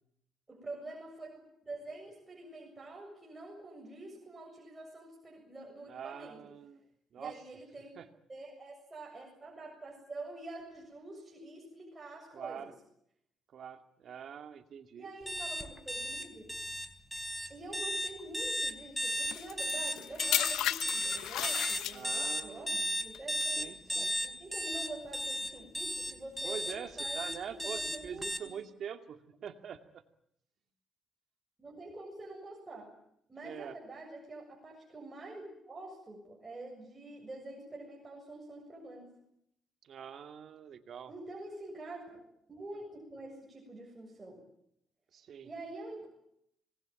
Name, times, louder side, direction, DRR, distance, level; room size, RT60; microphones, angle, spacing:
voice 1, 0.5-6.4 7.1-7.9 8.3-12.7 15.0-16.5 17.5-28.3 31.6-32.9 33.3-39.1 41.1-42.2 42.5-44.4 45.4-46.1, right 2 dB, 20° right, -1 dB, 7.3 m, -46 dB
voice 2, 5.9-6.9 7.1-7.3 8.0-8.1 12.3-12.7 13.5-15.1 21.9-22.7 23.6-24.2 26.4-30.0 33.4-33.8 39.8-41.1 45.1-45.5, right 8 dB, 60° right, 7 dB, 2.3 m, -44 dB
sound 1, 15.3-28.4, equal, 5° right, 4.0 m, -34 dB
sound 2, 19.3-22.4 23.1-23.4, left 12 dB, 85° left, 0.9 m, -34 dB
26.0 x 19.5 x 9.0 m, 0.75 s
cardioid pair, 90°, 0 cm